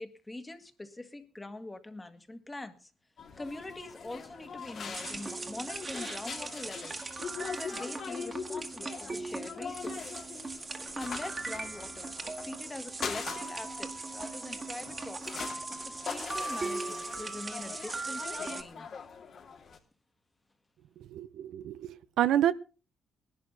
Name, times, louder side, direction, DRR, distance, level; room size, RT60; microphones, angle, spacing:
voice 1, 0.0-2.9 3.4-7.0 7.4-10.2 10.9-15.4 15.8-18.9, left 2 dB, 15° left, 9 dB, 1.8 m, -43 dB
sound 1, 3.2-19.8, left 6 dB, 55° left, 2.7 m, -42 dB
sound 2, 4.9-18.6, right 3 dB, 30° right, 1.7 m, -39 dB
voice 2, 21.0-22.5, right 11 dB, 80° right, 14 dB, 0.7 m, -29 dB
19.5 x 11.5 x 3.9 m, 0.33 s
cardioid pair, 90°, 0 cm